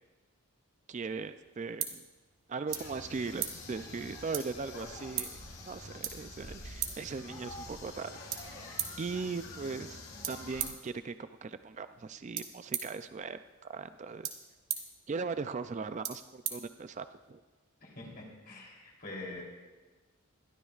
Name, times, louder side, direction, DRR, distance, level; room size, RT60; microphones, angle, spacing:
voice 1, 0.9-2.0 2.5-8.1 8.5-10.0 10.3-14.3 15.1-17.4, right 4 dB, 35° right, 11 dB, 0.3 m, -39 dB
sound 1, 1.0-17.3, right 9 dB, 65° right, 1.4 m, -43 dB
sound 2, 2.7-10.7, left 2 dB, 70° left, 3.5 m, -47 dB
voice 2, 17.8-19.4, left 2 dB, 45° left, -2 dB, 3.3 m, -45 dB
21.5 x 13.0 x 2.4 m, 1.3 s
head